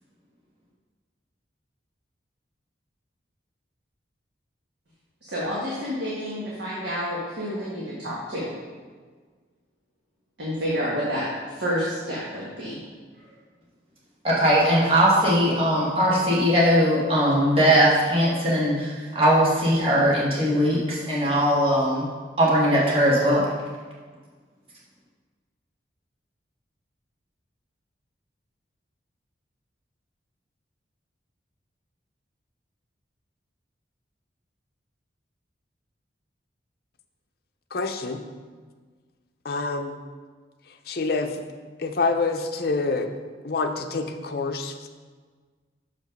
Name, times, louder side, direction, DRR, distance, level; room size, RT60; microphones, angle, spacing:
voice 1, 5.3-8.5 10.4-12.8, equal, 70° right, -7 dB, 1.6 m, -29 dB
voice 2, 14.2-22.1 22.4-23.4, equal, 30° right, -7 dB, 1.7 m, -20 dB
voice 3, 37.7-38.2 39.4-40.0 40.9-41.4 41.8-43.1 43.4-44.9, left 3 dB, 55° left, 6 dB, 0.6 m, -27 dB
6.7 x 5.3 x 5.2 m, 1.5 s
head